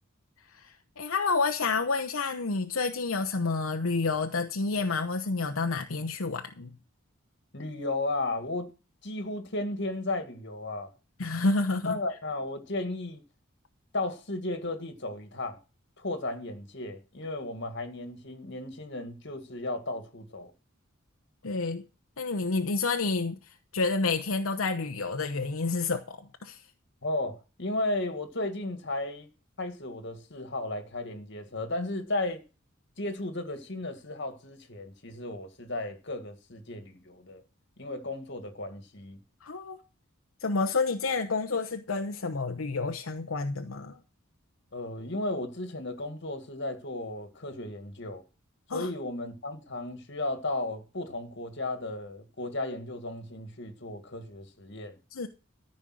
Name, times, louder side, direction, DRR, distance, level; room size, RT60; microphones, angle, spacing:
voice 1, 0.5-6.8 11.2-11.9 21.4-21.8 22.2-26.6 39.4-39.8 40.4-44.0 48.7-48.9 55.1-55.3, left 3 dB, 85° left, 0.9 m, -29 dB
voice 2, 7.5-8.7 9.0-10.9 11.9-13.2 13.9-15.6 16.0-20.5 27.0-29.3 29.6-32.4 33.0-37.4 37.8-39.2 44.7-48.2 48.7-55.0, left 2 dB, 55° left, 2.1 m, -34 dB
14.0 x 5.5 x 7.7 m
head